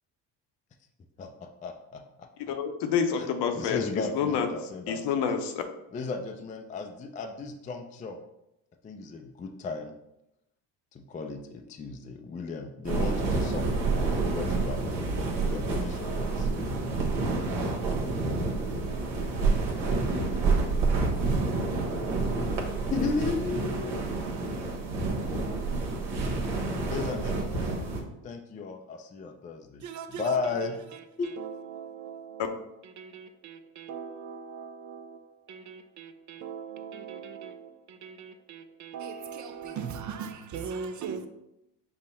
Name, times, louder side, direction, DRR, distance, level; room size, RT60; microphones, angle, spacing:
voice 1, 1.2-2.3 3.2-3.3 3.5-5.2 5.9-8.2 8.8-9.9 10.9-13.8 14.2-15.1 15.4-16.5 22.9-24.0 26.8-27.7 28.2-29.8 30.1-30.8 31.2-31.4, left 4 dB, 20° left, 0.4 m, -35 dB
voice 2, 2.5-3.8 4.1-4.5 4.9-5.6, left 7 dB, 65° left, 0.7 m, -28 dB
sound 1, 12.8-28.0, right 3 dB, 70° right, 1.2 m, -28 dB
voice 3, 29.8-41.3, right 6 dB, 40° right, 0.5 m, -40 dB
5.5 x 2.1 x 4.1 m
supercardioid pair, 85°, 46 cm